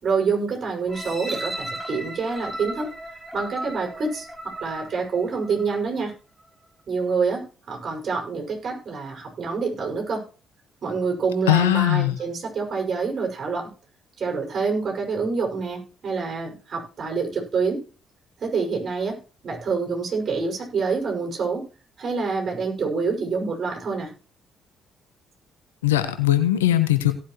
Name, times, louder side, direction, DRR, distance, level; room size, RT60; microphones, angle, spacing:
voice 1, 0.0-2.9 3.3-4.3 4.6-6.1 6.9-10.2 10.8-13.7 14.2-17.8 18.4-21.6 22.0-24.1, right 4 dB, 50° right, 1 dB, 5.7 m, -27 dB
sound 1, 0.9-5.8 6.4-6.5, right 1 dB, 5° left, 6.3 m, -35 dB
voice 2, 11.5-12.2 25.8-27.1, left 14 dB, 85° left, 10 dB, 1.1 m, -20 dB
17.5 x 8.7 x 3.0 m, 0.36 s
hypercardioid pair, 45°, 0 cm